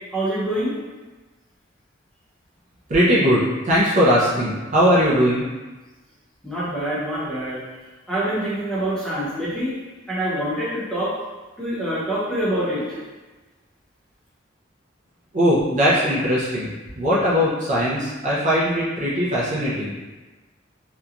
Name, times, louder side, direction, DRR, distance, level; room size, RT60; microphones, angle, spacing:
voice 1, 0.1-0.7 6.4-7.6 8.1-9.7 10.1-11.1 11.6-13.0, right 1 dB, 5° left, -10 dB, 0.8 m, -25 dB
voice 2, 2.9-5.4 15.3-20.0, equal, 40° right, -7 dB, 0.4 m, -20 dB
2.9 x 2.2 x 2.4 m, 1.2 s
head